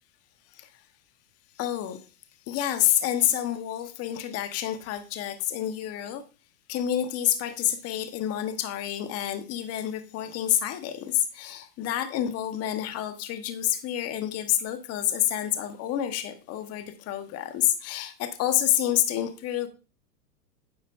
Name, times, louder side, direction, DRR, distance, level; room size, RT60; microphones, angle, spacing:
voice 1, 1.6-2.0 2.5-6.2 6.7-19.7, left 12 dB, 30° left, 1.2 m, -28 dB
9.8 x 7.1 x 2.6 m
hypercardioid pair, 115°, 50 cm